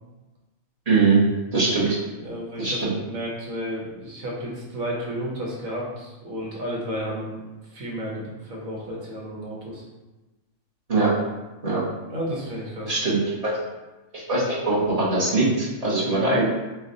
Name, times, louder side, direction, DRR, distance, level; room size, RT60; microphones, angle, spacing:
voice 1, 0.9-1.2 1.5-2.0 2.6-2.9 10.9-11.1 11.6-11.8 12.8-13.2 13.4-13.5 14.1-16.4, right 3 dB, 30° right, -8 dB, 1.1 m, -21 dB
voice 2, 2.2-2.8 3.0-7.4 7.7-9.8 12.1-13.0 16.0-16.4, equal, 75° right, -3 dB, 1.4 m, -32 dB
4.7 x 2.3 x 3.9 m, 1.1 s
omnidirectional pair, 1.4 m